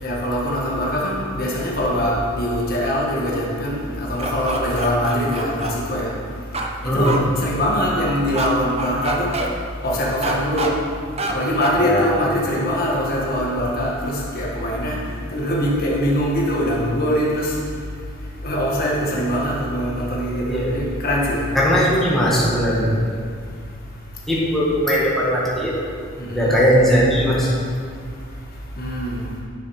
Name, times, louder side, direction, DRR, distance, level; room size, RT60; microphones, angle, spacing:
voice 1, 0.0-6.1 6.8-9.3 9.8-10.7 11.3-15.0 15.3-17.5 18.4-21.4 26.3-26.5 28.8-29.2, equal, 45° left, -3 dB, 1.4 m, -22 dB
sound 1, 4.2-5.7 6.5-6.7 7.0-7.2 8.3-8.5 8.8-9.5 10.2-10.7 11.2-11.3 11.6-11.8, right 2 dB, 30° right, 0.7 m, -26 dB
voice 2, 21.6-23.0 24.3-25.7 26.3-27.5, equal, ahead, -7 dB, 1.7 m, -18 dB
10.5 x 6.4 x 4.9 m, 2.1 s
head